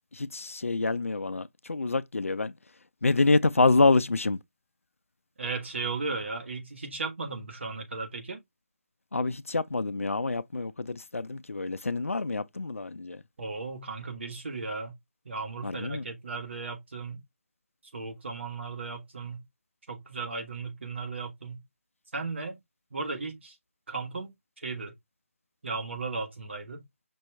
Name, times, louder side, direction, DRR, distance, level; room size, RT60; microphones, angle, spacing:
voice 1, 0.0-2.5 3.0-4.4 9.1-13.2 15.6-16.0, left 3 dB, 75° left, 0.5 m, -27 dB
voice 2, 5.4-8.4 13.4-14.9 15.2-17.2 17.9-19.4 19.9-21.6 22.1-22.6 22.9-23.5 23.9-24.3 24.6-24.9 25.6-26.8, right 4 dB, 55° right, 1.4 m, -35 dB
5.3 x 2.9 x 3.3 m
figure-of-eight pair, 150°, 7 cm